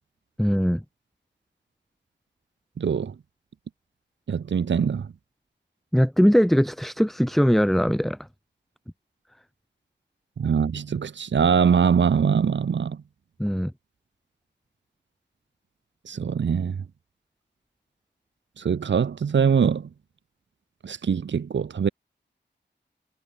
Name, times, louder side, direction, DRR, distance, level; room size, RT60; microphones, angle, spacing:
voice 1, 0.4-0.8 5.9-8.2 13.4-13.7, equal, ahead, 1.4 m, -20 dB
voice 2, 2.8-3.1 4.3-5.1 10.4-13.0 16.1-16.8 18.6-19.9 20.8-21.9, right 6 dB, 75° right, 0.8 m, -23 dB
wide cardioid pair, 60°, 19 cm